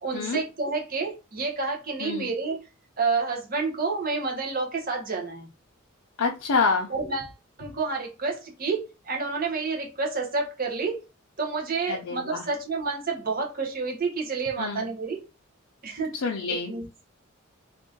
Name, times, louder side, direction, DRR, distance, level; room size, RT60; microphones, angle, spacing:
voice 1, 0.0-2.6 3.0-5.5 6.9-7.3 7.6-11.0 11.4-15.2 15.8-16.1 16.7-17.0, right 4 dB, 45° right, 1.0 m, -29 dB
voice 2, 6.2-6.9 11.9-12.5 14.6-14.8 16.1-16.7, left 4 dB, 85° left, 0.6 m, -27 dB
2.9 x 2.6 x 3.8 m
head